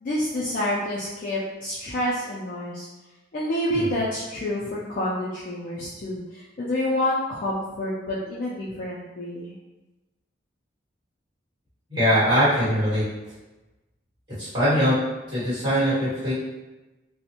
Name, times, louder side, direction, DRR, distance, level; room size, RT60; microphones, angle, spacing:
voice 1, 0.0-2.9 3.3-9.5, left 1 dB, 45° left, -7 dB, 0.3 m, -28 dB
voice 2, 11.9-13.0 14.4-15.0 15.3-16.3, equal, 25° right, -12 dB, 1.5 m, -21 dB
2.5 x 2.0 x 2.8 m, 1.1 s
head